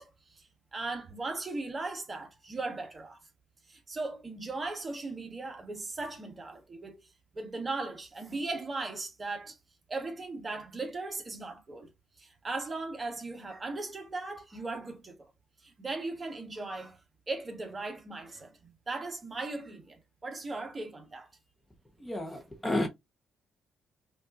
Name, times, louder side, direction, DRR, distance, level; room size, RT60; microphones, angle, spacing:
voice 1, 0.0-3.2 3.7-7.0 7.3-9.6 9.9-11.9 12.2-15.3 15.6-17.0 17.3-21.3, right 3 dB, 30° right, 1.2 m, -38 dB
voice 2, 22.0-22.9, left 1 dB, 15° left, 1.0 m, -31 dB
5.2 x 2.6 x 2.4 m
cardioid pair, 90°, 0 cm